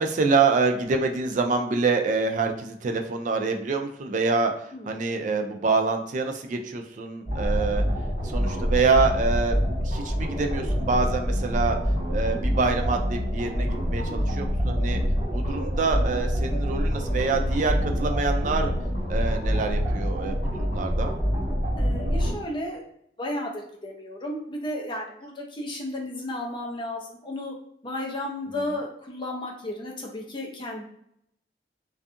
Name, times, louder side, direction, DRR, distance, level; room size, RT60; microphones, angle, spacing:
voice 1, 0.0-4.5 4.9-7.8 8.2-9.6 9.8-11.8 12.1-15.0 15.3-18.7 19.1-21.1, right 4 dB, 45° right, 5 dB, 0.3 m, -26 dB
sound 1, 7.3-22.3, equal, 45° left, 1.4 m, -26 dB
voice 2, 21.7-22.8 23.2-27.5 27.8-30.9, left 1 dB, 25° left, -1 dB, 0.6 m, -33 dB
2.6 x 2.3 x 2.4 m, 0.72 s
head